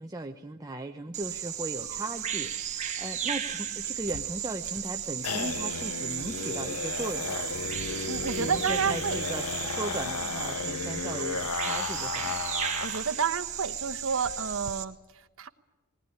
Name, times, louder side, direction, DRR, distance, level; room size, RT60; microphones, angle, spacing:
voice 1, 0.0-7.5 8.4-12.5, right 2 dB, 15° right, 4 dB, 0.8 m, -38 dB
Bird vocalization bird call bird song, 1.1-14.8, right 9 dB, 30° right, 1.7 m, -35 dB
sound 1, 4.0-13.1 13.4-13.5 13.8-13.9 14.3-14.7, left 5 dB, 85° left, 0.8 m, -34 dB
voice 2, 8.0-9.2 10.3-10.4 12.8-15.5, right 6 dB, 65° right, 9 dB, 1.1 m, -30 dB
20.5 x 19.5 x 9.9 m, 1.1 s
head